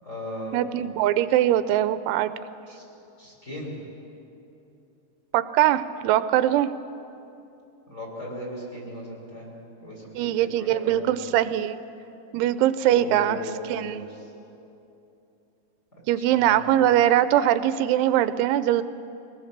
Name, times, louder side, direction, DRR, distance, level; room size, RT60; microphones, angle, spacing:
voice 1, 0.0-0.6 2.7-2.8 3.2-3.7 7.9-9.5 9.8-11.3 12.8-14.2 16.2-16.8, left 1 dB, 15° left, -3 dB, 4.8 m, -37 dB
voice 2, 0.5-2.3 5.3-6.7 10.1-11.8 12.3-13.4 13.7-14.0 16.1-18.8, right 12 dB, 90° right, 13 dB, 3.0 m, -22 dB
23.5 x 19.0 x 6.6 m, 2.8 s
omnidirectional pair, 5.3 m